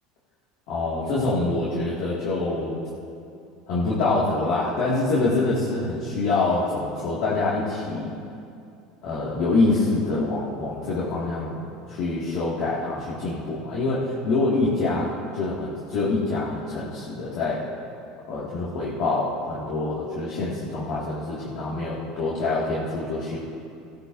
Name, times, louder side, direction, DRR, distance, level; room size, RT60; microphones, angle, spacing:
voice 1, 0.7-2.9 3.7-8.1 9.0-17.6 18.3-23.4, left 2 dB, 60° left, -7 dB, 2.2 m, -25 dB
18.0 x 11.5 x 2.7 m, 2.5 s
supercardioid pair, 130°, 0 cm